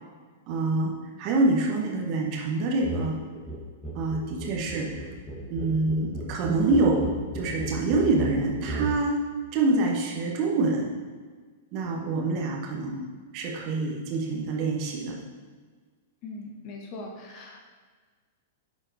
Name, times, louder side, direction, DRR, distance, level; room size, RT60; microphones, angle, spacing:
voice 1, 0.5-0.9 1.2-3.2 3.9-5.1 5.5-9.3 9.5-10.9 11.7-13.0 13.3-15.1, right 2 dB, 40° right, -1 dB, 1.1 m, -26 dB
sound 1, 2.8-3.1 3.3-9.0, right 1 dB, 5° left, 1.2 m, -35 dB
voice 2, 16.2-17.7, left 2 dB, 40° left, 0 dB, 1.1 m, -40 dB
9.9 x 4.4 x 2.6 m, 1.5 s
figure-of-eight pair, 100°, 0 cm